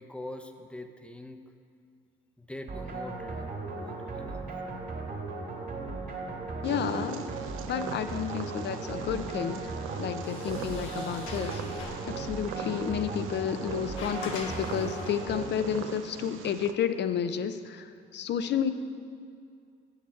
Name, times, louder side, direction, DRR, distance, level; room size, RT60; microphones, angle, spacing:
voice 1, 0.0-1.4 2.4-4.4, left 1 dB, 5° left, 7 dB, 0.6 m, -43 dB
sound 1, 2.7-16.0, right 3 dB, 50° right, 2.2 m, -37 dB
voice 2, 6.6-7.2 7.7-9.7 10.0-18.7, left 8 dB, 60° left, 11 dB, 0.5 m, -31 dB
Purr, 6.6-16.7, right 8 dB, 85° right, 0.5 m, -41 dB
Sliding door, 9.9-15.5, left 3 dB, 90° left, 1.2 m, -44 dB
7.2 x 6.6 x 5.7 m, 2.3 s
cardioid pair, 90°, 20 cm